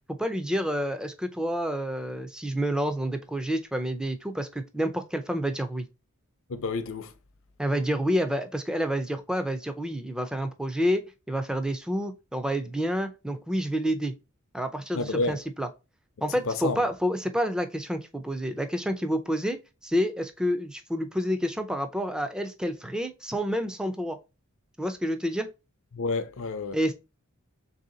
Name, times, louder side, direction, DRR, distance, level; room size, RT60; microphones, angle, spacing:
voice 1, 0.2-5.9 7.6-14.1 14.5-15.7 16.2-19.6 19.8-24.2 24.8-25.5 26.7-26.9, equal, 5° right, 0.4 m, -29 dB
voice 2, 6.5-7.1 14.9-15.4 16.5-16.8 25.9-26.8, left 3 dB, 65° left, 0.5 m, -29 dB
3.4 x 2.7 x 3.8 m
head